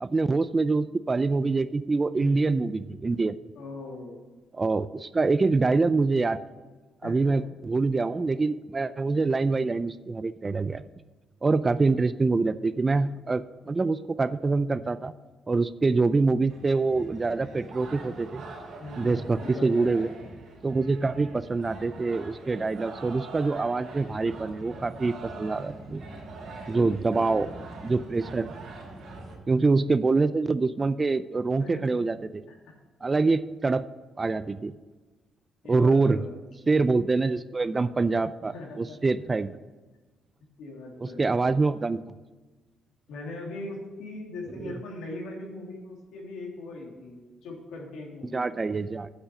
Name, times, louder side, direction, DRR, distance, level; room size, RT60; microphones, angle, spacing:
voice 1, 0.0-3.4 4.5-6.4 7.0-10.8 11.4-15.1 15.5-18.4 19.0-20.1 20.6-26.0 26.7-27.5 27.8-28.5 29.5-32.4 33.0-33.8 34.2-34.7 35.7-36.2 36.7-39.5 41.0-42.0 44.6-44.7 48.3-49.1, right 3 dB, 25° right, 14 dB, 0.4 m, -25 dB
voice 2, 2.1-2.6 3.5-4.2 7.0-7.5 18.8-20.0 26.7-27.3 31.6-32.0 32.5-32.7 35.6-36.4 38.4-39.0 40.6-41.2 43.1-48.5, left 2 dB, 85° left, -1 dB, 2.9 m, -40 dB
sound 1, 16.5-29.4, right 3 dB, 70° right, 3.4 m, -43 dB
8.3 x 6.3 x 7.7 m, 1.3 s
cardioid pair, 90°, 0 cm